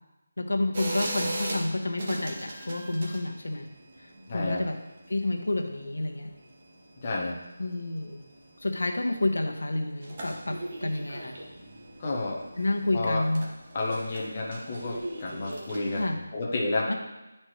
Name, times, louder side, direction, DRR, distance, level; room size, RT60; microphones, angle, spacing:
voice 1, 0.4-3.7 4.0-4.8 5.1-6.3 7.6-8.2 8.6-11.4 12.6-13.4 15.9-16.2 16.9-17.0, left 2 dB, 85° left, 4 dB, 1.0 m, -29 dB
sound 1, 0.7-16.1, right 1 dB, 30° right, 0.9 m, -39 dB
voice 2, 4.3-4.6 7.0-7.4 12.0-12.4 12.9-13.2 13.7-16.9, left 2 dB, 25° left, -2 dB, 0.8 m, -30 dB
9.1 x 4.3 x 3.1 m, 1.1 s
figure-of-eight pair, 175°, 0 cm